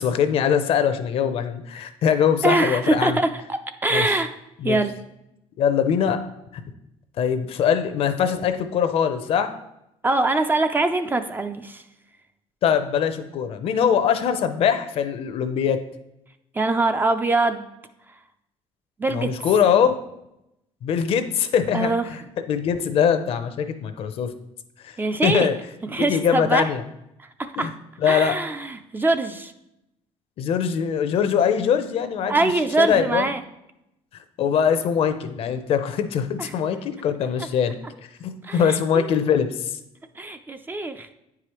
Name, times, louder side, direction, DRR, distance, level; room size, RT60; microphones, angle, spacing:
voice 1, 0.0-3.2 3.9-4.1 4.6-4.8 5.6-6.2 7.2-9.5 12.6-15.8 19.1-19.9 20.8-22.2 22.5-24.3 24.8-25.0 25.2-25.5 26.0-26.8 27.6-27.7 28.0-28.4 30.4-32.5 32.8-33.3 34.4-37.8 38.2-39.8, left 7 dB, 60° left, 9 dB, 0.6 m, -22 dB
voice 2, 2.4-4.3 4.6-4.9 10.0-11.8 16.5-17.7 19.0-19.3 21.7-22.0 25.0-25.5 25.8-26.7 27.2-27.7 28.0-29.5 32.3-33.4 36.4-36.6 37.4-37.5 38.4-39.1 40.2-41.1, right 2 dB, 15° right, 8 dB, 0.4 m, -23 dB
9.0 x 4.8 x 3.0 m, 0.85 s
cardioid pair, 120°, 11 cm